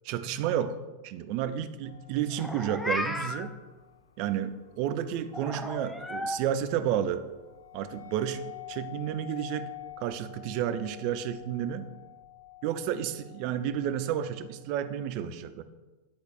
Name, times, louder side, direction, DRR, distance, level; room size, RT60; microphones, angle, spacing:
voice 1, 0.1-3.6 4.2-7.3 7.7-9.7 10.0-11.9 12.6-15.6, right 10 dB, 45° right, 11 dB, 0.4 m, -31 dB
sound 1, 1.8-15.1, left 15 dB, 70° left, 0.4 m, -49 dB
Meow, 2.3-3.5 5.3-6.4, left 1 dB, 5° left, 0.5 m, -34 dB
10.0 x 4.0 x 2.5 m, 1.2 s
figure-of-eight pair, 90°, 0 cm